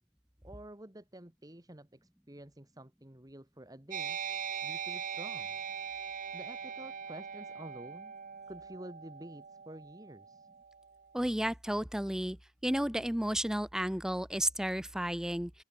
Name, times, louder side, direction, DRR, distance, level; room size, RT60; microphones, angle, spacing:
voice 1, 0.4-4.2 4.6-5.6 6.3-8.2 8.5-10.5, right 1 dB, 20° right, 1.7 m, -50 dB
sound 1, 3.9-11.0, right 7 dB, 40° right, 0.8 m, -41 dB
voice 2, 11.1-12.4 12.6-15.6, equal, 5° right, 0.5 m, -32 dB
open air
head